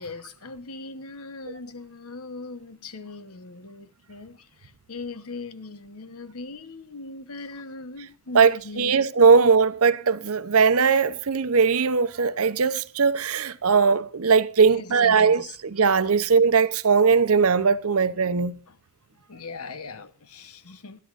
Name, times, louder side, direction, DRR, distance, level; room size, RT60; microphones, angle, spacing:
voice 1, 0.0-9.0 14.6-15.6 18.7-18.8 19.3-21.0, left 3 dB, 80° left, 1.1 m, -39 dB
voice 2, 8.3-18.6, right 5 dB, 70° right, 0.8 m, -20 dB
21.5 x 11.5 x 2.5 m
head